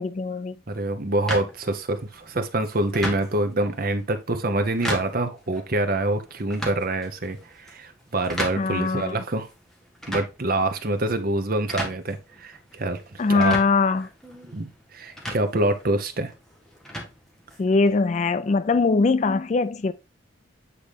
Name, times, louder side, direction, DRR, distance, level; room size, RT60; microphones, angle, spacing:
voice 1, 0.0-0.5 8.6-9.2 13.2-14.1 17.6-19.9, left 4 dB, 35° left, 0.3 m, -22 dB
voice 2, 0.7-9.5 10.1-13.5 14.5-16.3, right 2 dB, 45° right, 0.9 m, -26 dB
sound 1, 1.3-17.9, equal, ahead, 1.3 m, -37 dB
8.4 x 3.8 x 3.4 m
head